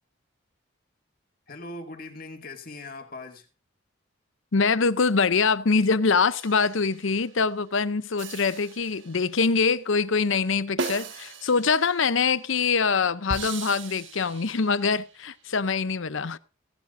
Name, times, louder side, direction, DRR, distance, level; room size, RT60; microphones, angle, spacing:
voice 1, 1.5-3.5, left 2 dB, 45° left, 2.3 m, -40 dB
voice 2, 4.5-16.4, left 5 dB, 70° left, 0.7 m, -24 dB
sound 1, 6.3-7.2 8.2-9.5 10.8-12.4 13.3-15.1, right 3 dB, 65° right, 1.6 m, -37 dB
17.0 x 11.5 x 2.6 m
head